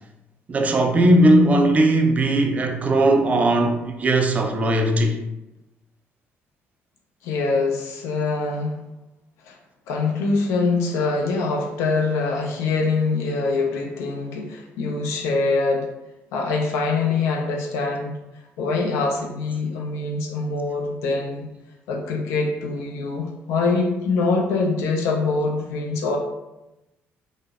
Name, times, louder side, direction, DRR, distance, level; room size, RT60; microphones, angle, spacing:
voice 1, 0.5-5.2, right 1 dB, 30° right, 0.4 m, -18 dB
voice 2, 7.2-8.8 9.4-9.6 9.9-15.9 16.3-18.2 18.6-21.5 21.9-26.2, left 3 dB, 85° left, 0.4 m, -24 dB
2.8 x 2.0 x 2.3 m
cardioid pair, 95°, 5 cm